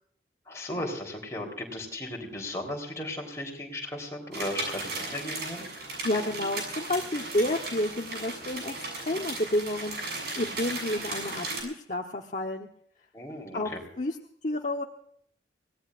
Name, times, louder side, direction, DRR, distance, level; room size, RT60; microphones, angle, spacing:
voice 1, 0.5-5.7 13.1-13.8, left 1 dB, 15° left, 0 dB, 3.8 m, -36 dB
sound 1, 4.3-11.6, right 2 dB, 60° right, 7.2 m, -36 dB
voice 2, 6.0-12.7 13.5-14.2 14.4-14.8, left 1 dB, 45° left, 1 dB, 1.1 m, -30 dB
24.0 x 18.0 x 2.6 m, 0.64 s
head